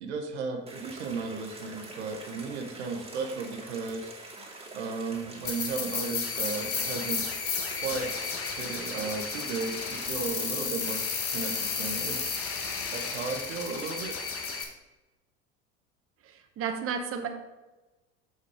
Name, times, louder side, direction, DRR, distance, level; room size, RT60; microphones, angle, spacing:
voice 1, 0.0-4.1 4.7-7.3 7.8-8.1 8.6-11.0 11.3-12.3 12.9-14.2, right 4 dB, 80° right, 4 dB, 1.2 m, -35 dB
sound 1, 0.7-10.7, right 2 dB, 20° right, 2.4 m, -46 dB
sound 2, 5.4-14.6, left 5 dB, 40° left, 1.6 m, -33 dB
voice 2, 16.2-17.3, right 6 dB, 40° right, 5 dB, 1.1 m, -33 dB
6.2 x 6.0 x 4.8 m, 1.1 s
hypercardioid pair, 75°, 33 cm